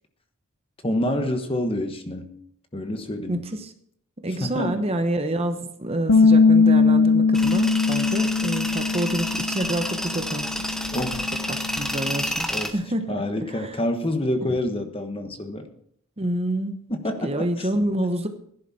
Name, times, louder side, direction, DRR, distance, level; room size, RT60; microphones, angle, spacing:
voice 1, 0.8-2.3 2.7-3.4 4.4-4.8 10.9-11.3 12.5-12.7 13.1-15.7 16.9-17.7, left 1 dB, 25° left, 6 dB, 1.2 m, -27 dB
voice 2, 3.3-3.7 4.2-10.5 11.5-13.0 13.5-13.8 14.5-14.6 16.2-16.8 17.2-18.3, right 1 dB, 30° right, 7 dB, 1.0 m, -27 dB
Bass guitar, 6.1-12.3, left 4 dB, 65° left, 0.8 m, -21 dB
Tools, 7.3-12.7, equal, ahead, 1.0 m, -30 dB
16.5 x 11.0 x 4.2 m, 0.65 s
head